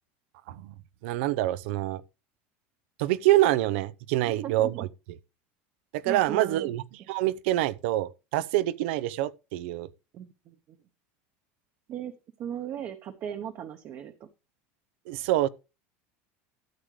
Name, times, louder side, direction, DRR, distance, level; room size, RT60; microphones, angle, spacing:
voice 1, 1.0-2.0 3.0-4.9 5.9-9.9 15.1-15.5, right 15 dB, 75° right, 0.7 m, -26 dB
voice 2, 4.2-4.8 6.1-6.7 10.1-10.5 11.9-12.1 12.4-14.1, right 9 dB, 40° right, 1.0 m, -37 dB
13.0 x 8.0 x 3.2 m
supercardioid pair, 145°, 7 cm